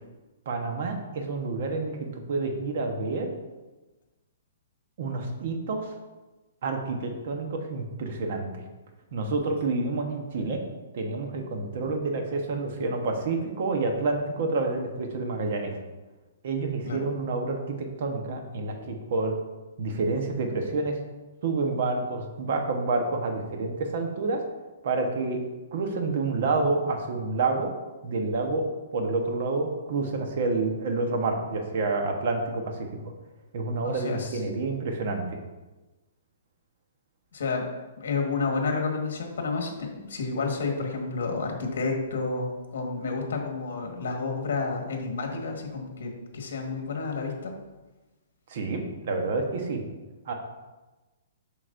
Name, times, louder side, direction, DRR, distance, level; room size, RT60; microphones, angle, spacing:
voice 1, 0.5-3.3 5.0-5.9 6.6-8.6 9.1-10.6 10.9-15.8 16.4-19.4 19.8-21.0 21.4-24.4 24.8-25.4 25.7-27.7 28.0-28.6 28.9-33.0 33.5-35.4 48.5-49.8 50.2-50.3, right 3 dB, 45° right, 3 dB, 1.0 m, -28 dB
voice 2, 33.8-34.4 37.3-37.7 38.0-47.5, left 4 dB, 70° left, 2 dB, 1.5 m, -30 dB
7.8 x 6.0 x 2.6 m, 1.1 s
hypercardioid pair, 175°, 0 cm